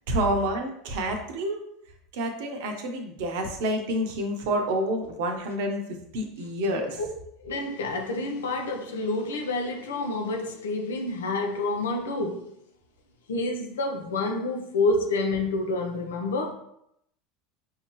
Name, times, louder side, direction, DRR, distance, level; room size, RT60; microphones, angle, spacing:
voice 1, 0.1-1.6 2.1-5.8 6.1-7.0, right 1 dB, 70° right, 0.8 m, -28 dB
voice 2, 7.4-12.5 13.3-16.5, left 2 dB, 85° left, 0.7 m, -28 dB
4.9 x 2.8 x 3.0 m
hypercardioid pair, 85°, 0 cm